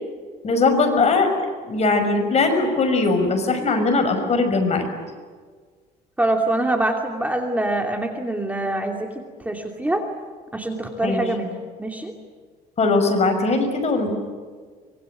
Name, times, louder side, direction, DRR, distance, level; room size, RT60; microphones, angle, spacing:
voice 1, 0.4-1.3 1.7-4.9 11.0-11.2 12.8-14.1, left 3 dB, 40° left, 5 dB, 6.0 m, -20 dB
voice 2, 6.2-10.1 10.5-11.5 11.8-12.1, right 1 dB, 10° right, 3 dB, 2.7 m, -24 dB
25.0 x 23.0 x 9.3 m, 1.6 s
cardioid pair, 110°, 17 cm